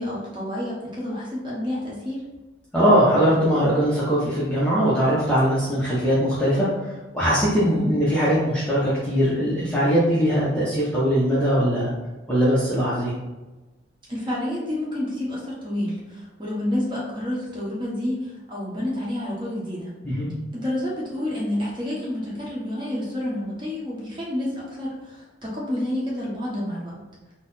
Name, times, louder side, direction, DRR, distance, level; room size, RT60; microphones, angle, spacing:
voice 1, 0.0-2.2 7.5-7.9 14.1-19.9 20.5-26.9, left 1 dB, 25° right, -6 dB, 1.1 m, -29 dB
voice 2, 2.7-11.9 12.3-13.1 20.0-20.3, equal, 5° left, -9 dB, 0.6 m, -21 dB
3.8 x 2.0 x 3.9 m, 1.1 s
head